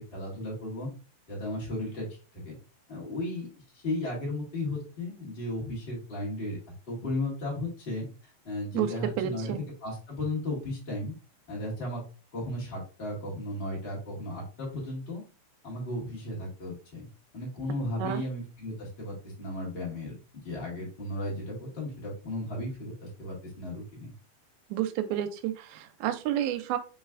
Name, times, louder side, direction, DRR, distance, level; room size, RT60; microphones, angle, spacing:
voice 1, 0.1-0.9 1.3-2.0 2.4-2.5 2.9-3.5 3.7-6.6 6.9-8.1 8.4-9.5 9.8-11.1 11.5-12.0 12.3-15.2 15.6-17.1 17.3-20.1 20.4-24.1, left 1 dB, 40° left, -4 dB, 0.8 m, -35 dB
voice 2, 8.7-9.6 18.0-18.2 24.7-26.8, right 11 dB, 85° right, 9 dB, 2.4 m, -30 dB
5.2 x 3.1 x 2.4 m, 0.34 s
omnidirectional pair, 4.2 m